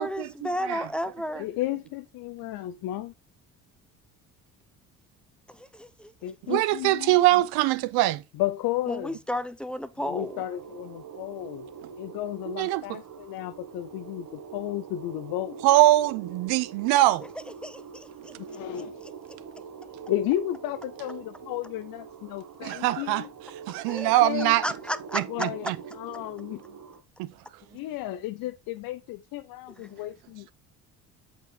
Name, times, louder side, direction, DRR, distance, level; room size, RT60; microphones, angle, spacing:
voice 1, 0.0-1.5 5.5-6.1 8.9-10.4 17.6-19.1 23.9-25.5 29.7-29.8, equal, 5° left, 0.8 m, -34 dB
voice 2, 1.4-3.1 6.2-7.2 8.3-9.1 10.0-11.7 12.0-15.6 18.4-19.0 20.1-23.3 24.0-24.6 25.3-25.7 25.9-26.6 27.7-30.5, left 14 dB, 65° left, 0.7 m, -33 dB
voice 3, 6.5-8.2 12.5-13.0 15.6-17.3 22.6-23.2 23.7-24.6 25.1-25.8 27.2-27.3, right 16 dB, 75° right, 0.8 m, -23 dB
sound 1, 10.0-27.0, right 7 dB, 50° right, 1.7 m, -44 dB
8.1 x 4.5 x 4.3 m
hypercardioid pair, 65°, 38 cm